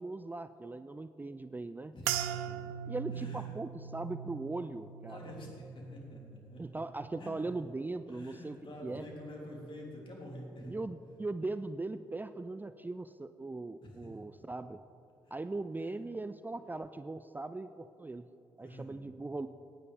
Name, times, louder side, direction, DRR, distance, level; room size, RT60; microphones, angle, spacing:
voice 1, 0.0-1.9 2.9-5.2 6.6-8.6 8.8-9.0 10.7-14.8 15.3-18.3 18.6-19.5, right 2 dB, 15° right, 11 dB, 0.4 m, -39 dB
voice 2, 1.9-2.6 3.1-3.5 5.1-6.6 7.2-7.3 8.1-10.8 13.8-14.1 15.2-15.3 15.8-15.9 18.6-19.2, left 1 dB, 45° left, -2 dB, 3.2 m, -47 dB
sound 1, 2.1-6.6 6.9-7.6 8.2-8.4, right 10 dB, 80° right, 0.4 m, -40 dB
17.5 x 9.5 x 3.5 m, 2.8 s
hypercardioid pair, 40°, 11 cm